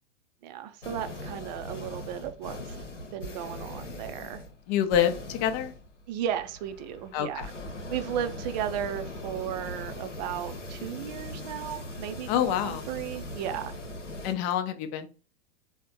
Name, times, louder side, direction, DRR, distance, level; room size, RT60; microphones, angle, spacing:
voice 1, 0.4-2.8 3.1-4.4 6.1-7.5 7.9-13.7, right 10 dB, 40° right, 9 dB, 0.5 m, -35 dB
sound 1, 0.8-14.3, left 1 dB, 85° left, 0.8 m, -40 dB
voice 2, 4.7-5.7 7.1-7.5 12.3-12.8 14.2-15.1, left 10 dB, 30° left, 8 dB, 0.6 m, -27 dB
4.3 x 2.1 x 3.8 m, 0.36 s
figure-of-eight pair, 95°, 35 cm